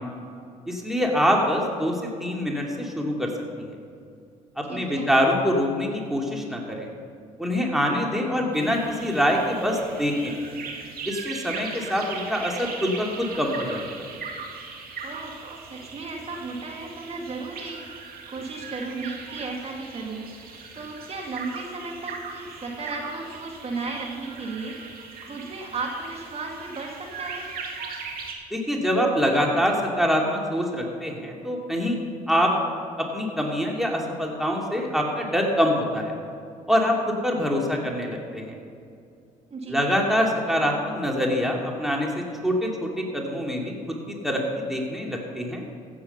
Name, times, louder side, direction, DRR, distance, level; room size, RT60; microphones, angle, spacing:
voice 1, 0.7-3.3 3.6-3.7 4.6-6.9 7.4-10.3 11.1-14.0 28.5-32.0 32.3-32.5 33.0-36.1 36.7-38.4 39.7-43.7 44.1-45.6, equal, ahead, -1 dB, 2.6 m, -25 dB
voice 2, 4.6-5.1 15.0-27.5 39.5-39.8, right 3 dB, 35° right, 0 dB, 2.3 m, -35 dB
sound 1, 8.5-28.3, right 5 dB, 60° right, 2.2 m, -39 dB
15.5 x 7.9 x 5.5 m, 2.4 s
hypercardioid pair, 60°, 18 cm